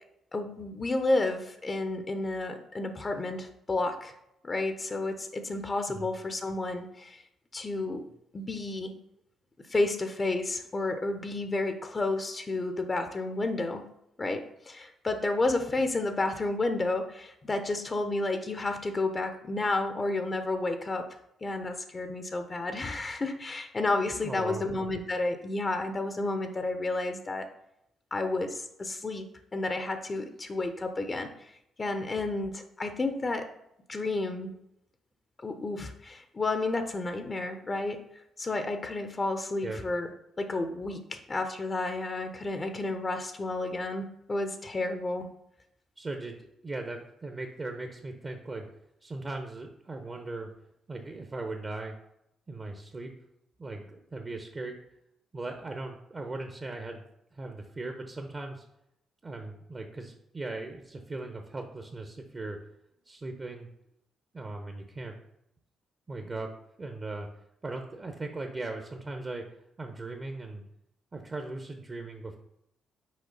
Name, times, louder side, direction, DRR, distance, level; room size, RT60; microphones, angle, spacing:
voice 1, 0.3-4.1 4.4-7.2 7.5-8.1 8.3-8.9 9.7-13.8 14.2-21.1 21.4-27.5 28.1-31.3 31.8-33.5 33.9-34.5 35.4-38.0 38.4-40.1 40.4-45.3, left 2 dB, 35° left, 7 dB, 0.9 m, -31 dB
voice 2, 24.2-24.6 39.6-39.8 46.0-48.7 49.0-50.5 50.9-51.9 52.5-53.1 53.6-54.7 55.3-58.7 59.2-62.6 63.0-63.7 64.3-65.1 66.1-66.5 66.8-67.3 67.6-69.4 69.8-70.6 71.1-72.4, right 2 dB, 35° right, 4 dB, 1.0 m, -38 dB
6.5 x 4.9 x 4.1 m, 0.79 s
hypercardioid pair, 45°, 0 cm